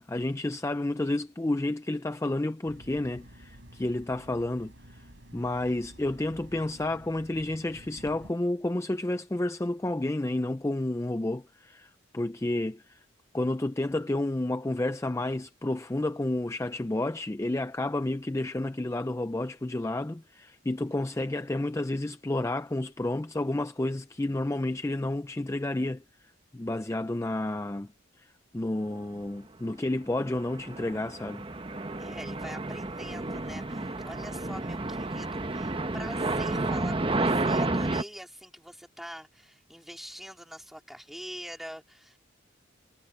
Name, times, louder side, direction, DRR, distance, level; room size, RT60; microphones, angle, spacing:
voice 1, 0.0-5.1 5.3-13.0 13.3-26.0 26.5-27.9 28.2-31.4, left 1 dB, 15° left, 0.4 m, -30 dB
sound 1, 2.6-8.3, equal, 60° right, 7.1 m, -50 dB
sound 2, 30.2-38.0, right 2 dB, 25° right, 0.9 m, -31 dB
voice 2, 32.0-42.2, equal, ahead, 2.9 m, -44 dB
head